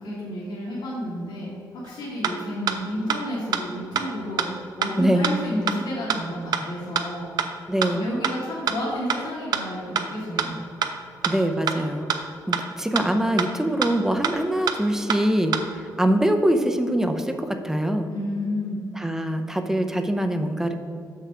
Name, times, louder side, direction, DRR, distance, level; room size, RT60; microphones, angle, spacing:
voice 1, 0.0-7.6 8.0-10.6 18.1-18.9, left 1 dB, 90° left, -7 dB, 2.0 m, -31 dB
sound 1, 1.9-2.0 2.2-2.3 2.7-2.8 3.1-3.2 3.5-3.6 4.0-4.1 4.4-4.5 4.8-4.9 5.2-5.3 5.7-5.8 6.1-6.2 6.5-6.6 7.0-7.1 7.4-7.5 7.8-7.9 8.2-8.3 8.7-8.8 9.1-9.2 9.5-9.6 10.0-10.1 10.4-10.5 10.8-10.9 11.2-11.3 11.7-11.8 12.1-12.2 12.5-12.6 13.0-13.1 13.4-13.5 13.8-13.9 14.2-14.3 14.7-14.8 15.1-15.2 15.5-15.6, right 8 dB, 70° right, 0.6 m, -24 dB
voice 2, 5.0-5.4 7.7-8.1 11.3-12.1 12.5-18.1 18.9-20.7, right 1 dB, 5° right, 7 dB, 0.5 m, -23 dB
7.0 x 5.6 x 4.9 m, 2.3 s
cardioid pair, 130°, 7 cm